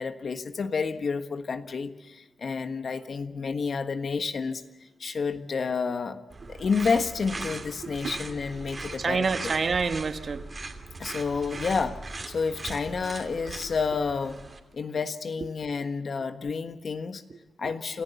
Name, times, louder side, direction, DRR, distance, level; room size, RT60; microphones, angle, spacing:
voice 1, 0.0-4.6 5.0-9.2 11.0-12.0 12.3-14.4 14.7-17.2 17.6-18.0, left 5 dB, 60° left, 8 dB, 1.4 m, -30 dB
sound 1, 6.3-14.6, right 3 dB, 40° right, 2.9 m, -39 dB
voice 2, 7.8-8.1 9.0-10.4 17.3-17.7, right 4 dB, 55° right, 9 dB, 1.2 m, -28 dB
28.0 x 14.5 x 7.1 m, 1.1 s
cardioid pair, 75°, 0 cm